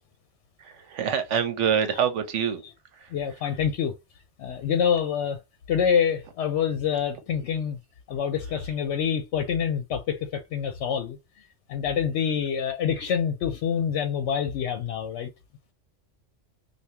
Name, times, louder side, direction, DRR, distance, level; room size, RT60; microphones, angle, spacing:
voice 1, 0.6-2.6 2.9-3.1, right 7 dB, 75° right, 1.0 m, -26 dB
voice 2, 3.1-3.9 4.4-5.4 5.7-7.8 8.1-11.2 11.7-15.3, left 7 dB, 70° left, 0.8 m, -26 dB
3.4 x 2.3 x 2.8 m
omnidirectional pair, 1.3 m